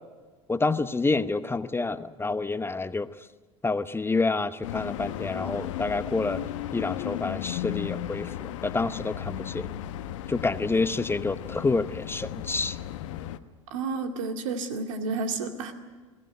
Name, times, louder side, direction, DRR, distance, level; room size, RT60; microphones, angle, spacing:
voice 1, 0.5-3.1 3.6-9.7 10.3-12.8, left 3 dB, 15° left, 13 dB, 0.8 m, -28 dB
sound 1, 4.6-13.4, left 12 dB, 75° left, 1.0 m, -35 dB
voice 2, 13.7-15.7, right 4 dB, 75° right, 5 dB, 2.3 m, -31 dB
22.0 x 16.5 x 10.0 m, 1.4 s
hypercardioid pair, 75°, 16 cm